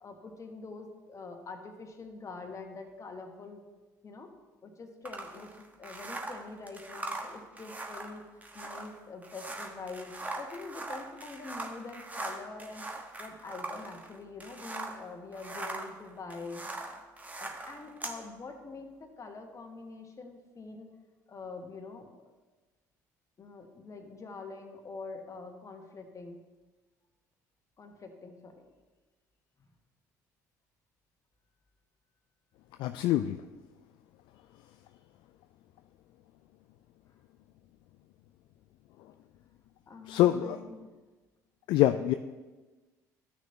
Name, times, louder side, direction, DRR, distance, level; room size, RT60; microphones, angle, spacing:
voice 1, 0.0-3.6 4.0-4.3 4.6-8.2 8.5-12.9 13.2-16.7 17.4-20.9 21.3-22.3 23.4-26.4 27.8-28.6 39.9-40.9, left 3 dB, 35° left, 4 dB, 1.4 m, -45 dB
sound 1, 5.0-15.0 15.3-18.2, right 2 dB, 15° right, 1.2 m, -41 dB
voice 2, 32.8-33.4 40.1-40.6 41.7-42.1, left 13 dB, 60° left, 9 dB, 0.3 m, -25 dB
13.0 x 6.2 x 2.8 m, 1.2 s
hypercardioid pair, 60°, 9 cm